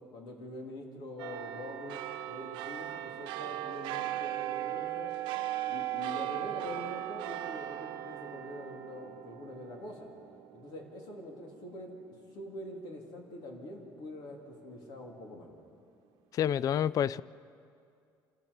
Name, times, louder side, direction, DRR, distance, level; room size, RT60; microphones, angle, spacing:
voice 1, 0.1-2.0 2.3-5.1 5.7-10.1 10.5-11.9 12.3-15.5, left 1 dB, 65° left, 3.8 m, -44 dB
sound 1, 1.2-12.0 12.4-12.5, right 14 dB, 80° right, 0.9 m, -38 dB
voice 2, 16.3-17.2, left 10 dB, 45° left, 0.4 m, -28 dB
27.5 x 14.0 x 7.2 m
cardioid pair, 125°, 8 cm